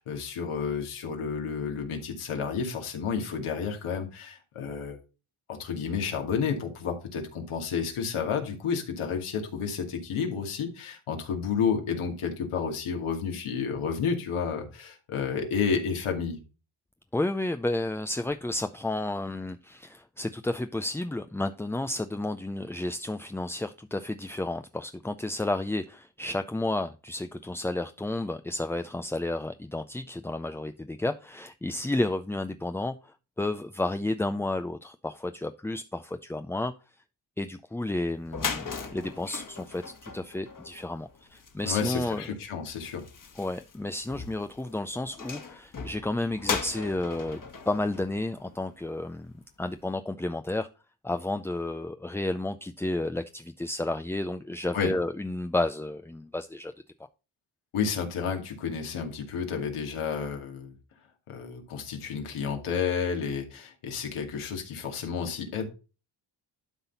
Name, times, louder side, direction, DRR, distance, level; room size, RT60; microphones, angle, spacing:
voice 1, 0.0-5.0 5.5-16.4 41.7-43.0 54.7-54.9 57.7-60.7 61.3-65.7, left 6 dB, 85° left, 2.4 m, -31 dB
voice 2, 17.1-36.7 37.4-42.2 43.4-49.3 49.6-50.7 51.0-56.7, left 2 dB, 5° left, 0.3 m, -31 dB
sound 1, 37.9-38.0 38.2-49.0, left 5 dB, 40° left, 1.6 m, -38 dB
12.0 x 4.1 x 4.0 m
cardioid pair, 75°, 49 cm